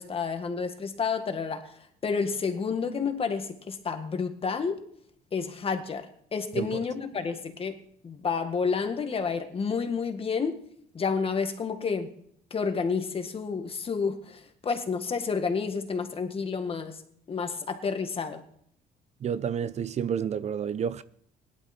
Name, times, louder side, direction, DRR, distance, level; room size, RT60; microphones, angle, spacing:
voice 1, 0.0-1.7 2.0-4.8 5.3-7.8 8.0-10.6 10.9-12.1 12.5-17.0 17.3-18.4, left 5 dB, 35° left, 1.8 m, -30 dB
voice 2, 19.2-21.0, right 8 dB, 40° right, 0.6 m, -30 dB
17.5 x 11.5 x 4.3 m
cardioid pair, 110°, 17 cm